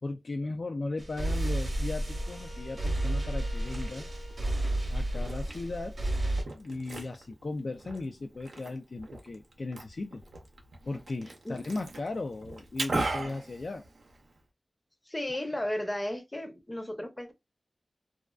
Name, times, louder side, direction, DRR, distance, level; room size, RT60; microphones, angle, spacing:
voice 1, 0.0-4.1 4.9-5.9 6.5-10.2 10.8-13.8, left 2 dB, 60° left, 0.3 m, -37 dB
Wind instrument woodwind instrument, 1.0-5.4, right 1 dB, 85° left, 0.9 m, -52 dB
sound 1, 1.0-6.4, right 1 dB, 45° right, 0.8 m, -31 dB
Liquid, 3.4-14.4, right 2 dB, 90° right, 0.6 m, -40 dB
voice 2, 15.1-17.3, left 1 dB, 20° left, 0.6 m, -34 dB
2.4 x 2.3 x 2.2 m
wide cardioid pair, 95°, 0 cm